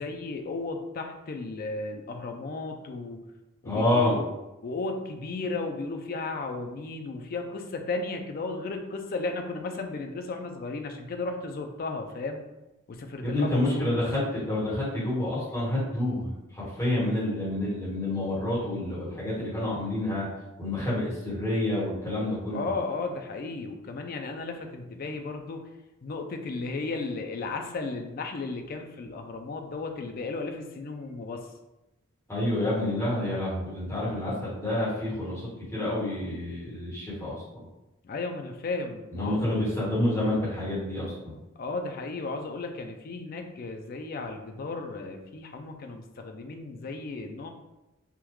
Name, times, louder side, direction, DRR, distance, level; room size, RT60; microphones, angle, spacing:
voice 1, 0.0-3.2 3.6-4.3 4.6-12.4 12.9-14.0 22.5-25.7 26.0-31.5 38.0-39.7 41.6-47.5, left 3 dB, 45° left, 4 dB, 0.3 m, -34 dB
voice 2, 3.6-4.1 13.2-20.3 20.6-22.7 32.3-35.4 35.7-37.7 39.1-41.3, left 1 dB, 15° left, -10 dB, 1.2 m, -28 dB
3.5 x 2.3 x 3.0 m, 0.97 s
head